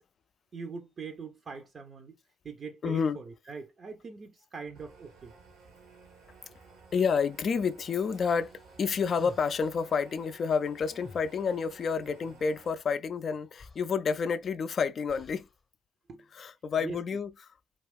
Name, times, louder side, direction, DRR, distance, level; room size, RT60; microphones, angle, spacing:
voice 1, 0.5-2.1 2.4-5.3 16.1-16.3 16.8-17.0, right 5 dB, 45° right, 0.5 m, -42 dB
voice 2, 2.8-3.2 6.9-8.5 8.8-15.5 16.3-17.3, left 5 dB, 50° left, 0.3 m, -29 dB
sound 1, 4.7-12.7, right 4 dB, 70° right, 0.8 m, -55 dB
sound 2, 8.3-9.9 10.8-11.7 13.2-13.3 13.5-14.5 15.1-15.6, left 3 dB, 30° left, 0.8 m, -52 dB
2.3 x 2.3 x 3.4 m
hypercardioid pair, 50°, 0 cm